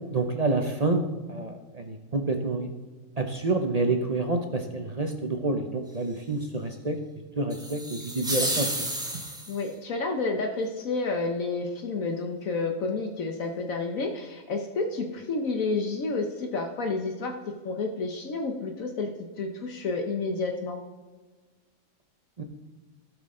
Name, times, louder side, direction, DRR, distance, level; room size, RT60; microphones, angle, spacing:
voice 1, 0.1-2.7 3.2-7.0 7.4-8.9 9.1-9.2 22.4-22.5, right 2 dB, 40° right, 5 dB, 0.6 m, -28 dB
sound 1, 7.5-9.7, right 1 dB, 5° right, 1.2 m, -31 dB
voice 2, 9.5-17.4 17.6-19.1 19.4-20.8, left 3 dB, 70° left, 4 dB, 1.3 m, -30 dB
16.5 x 6.2 x 3.7 m, 1.3 s
omnidirectional pair, 1.5 m